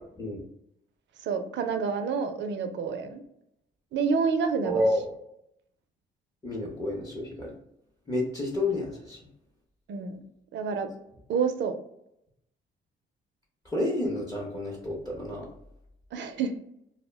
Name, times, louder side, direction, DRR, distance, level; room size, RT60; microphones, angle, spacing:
voice 1, 1.2-3.2 3.9-4.8 9.9-10.2 10.5-10.9 11.3-11.7 16.1-16.6, right 5 dB, 65° right, 7 dB, 0.5 m, -28 dB
voice 2, 4.6-5.1 6.4-7.6 8.1-9.2 13.7-15.5, left 1 dB, 20° left, -3 dB, 0.8 m, -29 dB
2.3 x 2.1 x 3.3 m, 0.78 s
cardioid pair, 90°, 20 cm